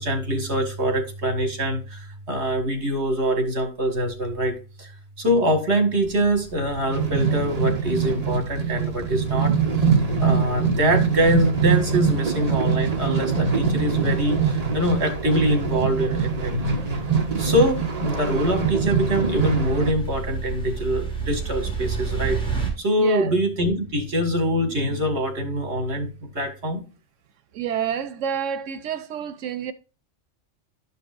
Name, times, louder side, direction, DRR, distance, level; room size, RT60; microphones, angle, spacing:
voice 1, 0.0-4.9 5.2-9.5 10.2-16.9 17.4-26.1 26.3-26.8, equal, 65° right, 2.2 m, -24 dB
sound 1, 6.0-22.7, right 5 dB, 5° left, 3.0 m, -35 dB
sound 2, 6.6-19.9, right 5 dB, 35° right, 1.2 m, -23 dB
voice 2, 23.0-23.4 27.5-29.7, right 8 dB, 85° right, 1.1 m, -28 dB
12.5 x 5.3 x 2.5 m
omnidirectional pair, 1.2 m